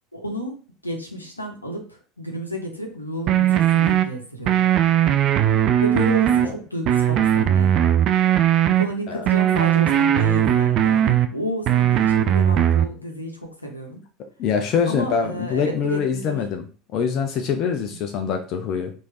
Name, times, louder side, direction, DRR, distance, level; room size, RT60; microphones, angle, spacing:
voice 1, 0.1-4.7 5.8-7.8 8.8-14.0 14.9-16.4 17.8-18.0, equal, 90° left, 1 dB, 0.8 m, -31 dB
sound 1, 3.3-4.0 4.5-6.5 6.9-8.8 9.3-11.3 11.7-12.9, right 10 dB, 45° right, 0.3 m, -18 dB
voice 2, 14.4-16.6 16.9-18.9, left 6 dB, 45° left, 5 dB, 0.5 m, -24 dB
3.1 x 2.6 x 3.1 m, 0.39 s
figure-of-eight pair, 75°, 0 cm